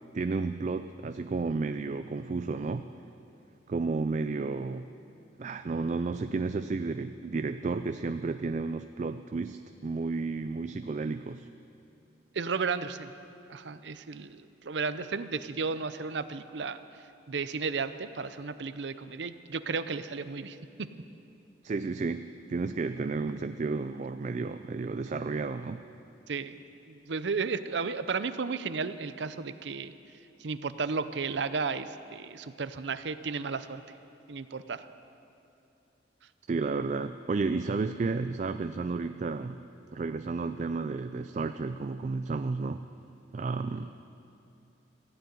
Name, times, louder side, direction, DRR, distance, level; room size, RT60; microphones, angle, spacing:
voice 1, 0.1-2.9 3.7-4.9 5.4-11.5 21.6-25.8 36.5-39.6 39.9-42.8 43.3-43.9, right 4 dB, 40° right, 10 dB, 0.4 m, -32 dB
voice 2, 12.3-13.1 13.5-16.8 17.3-20.9 26.3-26.6 26.9-29.9 30.4-33.8 34.3-34.9, right 4 dB, 80° right, 12 dB, 0.6 m, -33 dB
14.5 x 10.5 x 9.3 m, 2.7 s
head